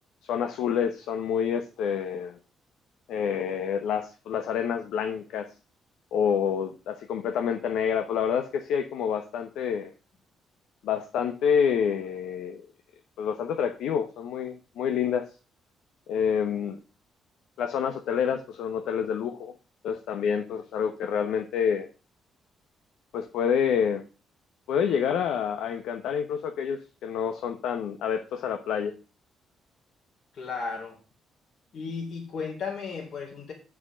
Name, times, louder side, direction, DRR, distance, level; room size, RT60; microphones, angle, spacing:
voice 1, 0.3-2.4 3.1-5.5 6.1-9.9 10.8-12.6 13.2-15.3 16.1-16.8 17.6-19.5 19.8-21.9 23.1-24.0 24.7-28.9, left 7 dB, 80° left, 7 dB, 1.0 m, -28 dB
voice 2, 30.3-31.0 31.7-33.5, left 5 dB, 65° left, -1 dB, 3.7 m, -34 dB
7.7 x 6.2 x 6.2 m, 0.33 s
cardioid pair, 90°, 0 cm